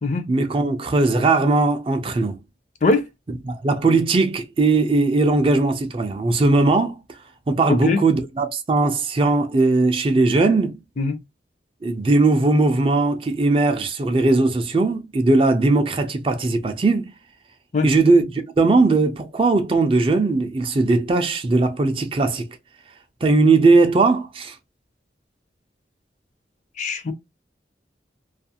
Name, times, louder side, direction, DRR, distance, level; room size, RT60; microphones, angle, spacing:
voice 1, 0.3-2.4 3.5-7.0 7.5-10.7 11.8-17.1 17.8-22.5 23.2-24.5, right 3 dB, 30° right, 0.4 m, -19 dB
voice 2, 7.7-8.0 11.0-11.2 17.7-17.9 26.8-27.1, left 3 dB, 40° left, 0.4 m, -21 dB
2.4 x 2.4 x 2.7 m
head